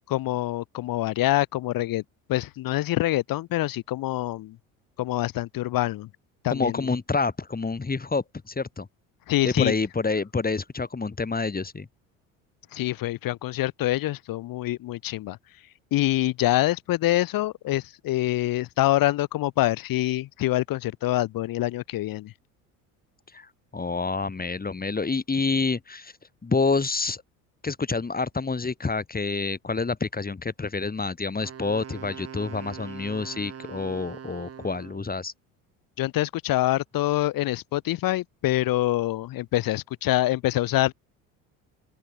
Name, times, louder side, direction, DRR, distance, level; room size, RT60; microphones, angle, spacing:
voice 1, 0.1-2.0 2.3-4.6 5.0-6.1 6.4-6.9 9.3-9.7 12.7-15.4 15.9-22.3 36.0-40.9, left 16 dB, 55° left, 1.4 m, -25 dB
voice 2, 6.5-8.9 9.4-11.9 23.3-26.1 26.4-27.2 27.6-35.3, left 4 dB, 20° left, 4.4 m, -28 dB
Wind instrument woodwind instrument, 31.4-35.1, right 7 dB, 35° right, 3.0 m, -42 dB
open air
hypercardioid pair, 65°, 42 cm